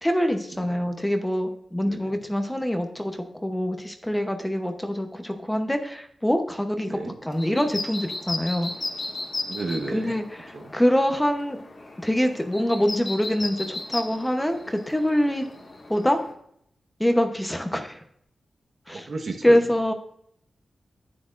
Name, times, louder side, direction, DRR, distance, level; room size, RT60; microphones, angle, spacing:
voice 1, 0.0-8.7 9.9-11.6 12.0-15.5 15.9-16.2 17.0-18.0 18.9-19.1 19.4-19.9, equal, 5° left, 6 dB, 0.9 m, -25 dB
sound 1, 7.3-16.3, left 2 dB, 45° left, 1.6 m, -36 dB
voice 2, 9.5-10.1 10.5-10.7 18.9-19.6, right 3 dB, 60° right, 2 dB, 1.2 m, -32 dB
10.0 x 9.6 x 2.5 m, 0.70 s
wide cardioid pair, 105°, 0 cm